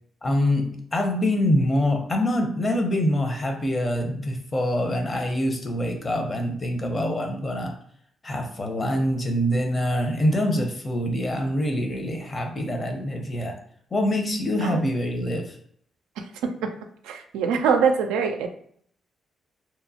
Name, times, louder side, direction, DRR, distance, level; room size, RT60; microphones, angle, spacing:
voice 1, 0.2-7.7 8.2-13.6 13.9-15.6, left 1 dB, 35° left, 3 dB, 0.7 m, -25 dB
voice 2, 16.4-16.7 17.0-18.5, right 6 dB, 90° right, 5 dB, 0.3 m, -23 dB
2.9 x 2.0 x 2.7 m, 0.64 s
supercardioid pair, 55°, 0 cm